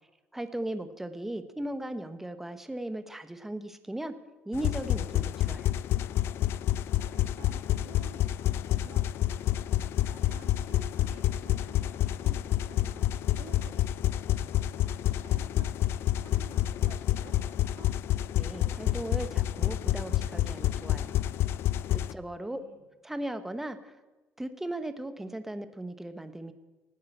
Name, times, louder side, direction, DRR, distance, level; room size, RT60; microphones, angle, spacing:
voice 1, 0.3-4.1 4.4-5.7 18.4-21.2 21.9-22.6 23.0-24.0 24.4-26.5, right 1 dB, 5° right, 10 dB, 1.1 m, -37 dB
sound 1, 4.5-22.1, left 12 dB, 65° left, 0.4 m, -28 dB
voice 2, 6.9-9.7 10.1-17.9 22.2-22.8, right 7 dB, 70° right, 3 dB, 2.8 m, -53 dB
16.0 x 9.6 x 7.9 m, 1.1 s
cardioid pair, 120°, 4 cm